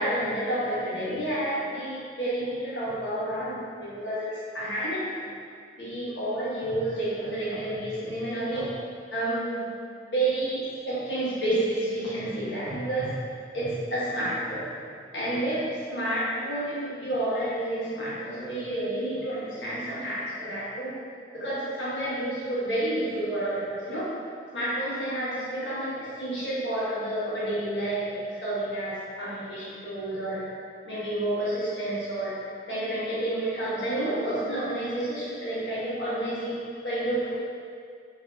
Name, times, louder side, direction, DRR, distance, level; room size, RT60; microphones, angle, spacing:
voice 1, 0.0-5.3 5.8-8.7 9.1-9.7 10.1-13.1 13.5-14.7 15.1-21.0 21.3-24.1 24.5-30.4 30.8-32.3 32.7-36.5 36.8-37.3, right 1 dB, 85° left, -9 dB, 1.3 m, -30 dB
3.9 x 2.8 x 2.7 m, 2.2 s
head